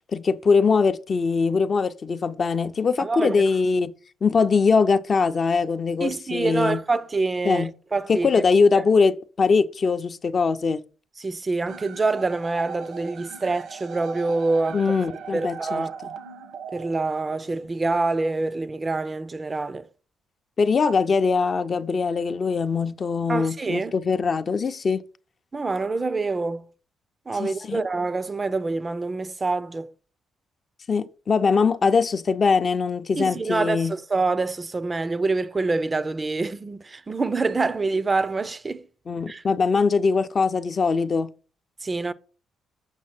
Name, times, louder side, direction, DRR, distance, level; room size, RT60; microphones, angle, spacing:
voice 1, 0.0-3.9 4.2-6.8 7.4-7.7 8.1-10.8 14.7-16.1 20.6-25.0 27.4-27.8 30.9-34.0 39.1-41.3, left 4 dB, 40° left, 0.5 m, -22 dB
voice 2, 3.0-3.4 6.0-8.3 8.7-8.8 11.2-14.8 15.3-16.0 16.7-19.9 23.3-23.9 25.5-26.6 27.3-29.9 33.2-38.9 39.3-39.4 41.8-42.1, right 3 dB, 25° right, 0.5 m, -26 dB
sound 1, 11.7-17.7, right 7 dB, 80° right, 1.2 m, -40 dB
7.4 x 5.7 x 4.3 m
cardioid pair, 90°, 0 cm